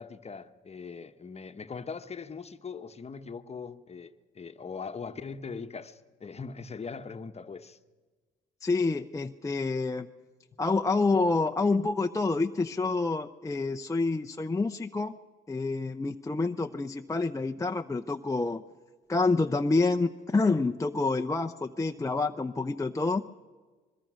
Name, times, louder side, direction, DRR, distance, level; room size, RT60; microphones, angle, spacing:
voice 1, 0.0-7.8, left 5 dB, 30° left, 1.1 m, -41 dB
voice 2, 8.6-10.1 10.6-15.2 15.5-18.6 19.1-23.2, left 3 dB, 15° left, 0.7 m, -28 dB
25.5 x 22.0 x 6.3 m
cardioid pair, 90°, 20 cm